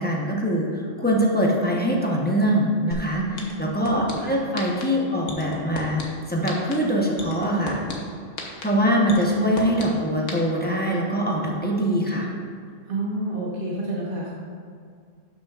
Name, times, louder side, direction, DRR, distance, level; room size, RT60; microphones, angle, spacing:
voice 1, 0.0-3.2 3.6-6.0 6.3-7.8 8.6-12.3, equal, 10° left, -3 dB, 0.9 m, -23 dB
sound 1, 2.9-3.0 3.4-4.1 4.6-4.8 5.3-6.0 6.5-6.7 7.2-7.9 8.4-8.6 9.1-9.8 10.3-10.4, left 4 dB, 75° left, 1.4 m, -33 dB
voice 2, 3.1-3.7 4.2-4.3 12.9-14.3, right 1 dB, 45° right, -5 dB, 1.1 m, -29 dB
12.0 x 5.9 x 2.5 m, 2.1 s
omnidirectional pair, 1.3 m